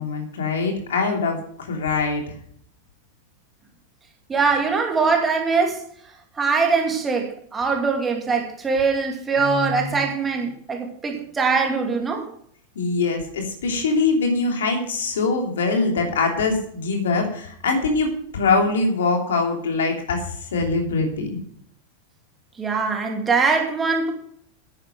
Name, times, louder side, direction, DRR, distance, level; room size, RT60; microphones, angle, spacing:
voice 1, 0.0-2.2 9.4-10.0 12.7-21.3, left 3 dB, 65° left, 2 dB, 2.9 m, -23 dB
voice 2, 4.3-5.8 6.4-12.2 22.6-24.1, right 4 dB, 15° right, 2 dB, 2.7 m, -22 dB
10.5 x 9.9 x 6.4 m, 0.62 s
figure-of-eight pair, 90°, 0 cm